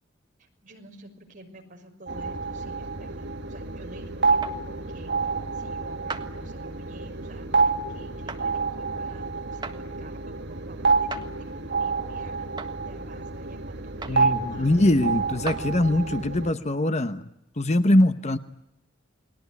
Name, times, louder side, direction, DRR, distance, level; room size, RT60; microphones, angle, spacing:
voice 1, 0.4-12.5 12.9-15.2, right 1 dB, 40° right, 3 dB, 5.8 m, -50 dB
sound 1, 2.1-16.5, right 4 dB, 55° right, 1.9 m, -28 dB
sound 2, 4.4-4.6 6.1-6.3 8.3-8.4 9.6-9.8 11.1-11.3 12.6-12.7 14.0-14.2 15.5-15.6, right 4 dB, 20° right, 1.6 m, -35 dB
voice 2, 14.1-17.3 17.6-18.4, left 1 dB, 35° left, 10 dB, 1.0 m, -22 dB
30.0 x 21.0 x 9.6 m, 0.80 s
head